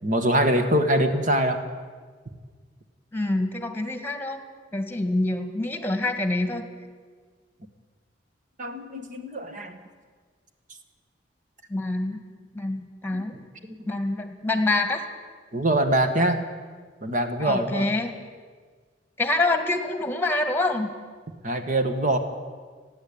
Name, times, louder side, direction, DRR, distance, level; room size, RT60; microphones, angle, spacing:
voice 1, 0.0-1.6 8.6-9.8 13.1-13.3 13.7-13.8 15.5-16.5 17.0-17.9 21.4-22.2, right 1 dB, 45° right, 7 dB, 1.9 m, -23 dB
voice 2, 3.1-4.4 4.7-6.7 11.7-12.2 12.5-13.4 13.9-15.0 17.4-18.1 19.2-20.9, left 2 dB, 10° left, 8 dB, 1.8 m, -26 dB
30.0 x 10.5 x 8.9 m, 1.5 s
head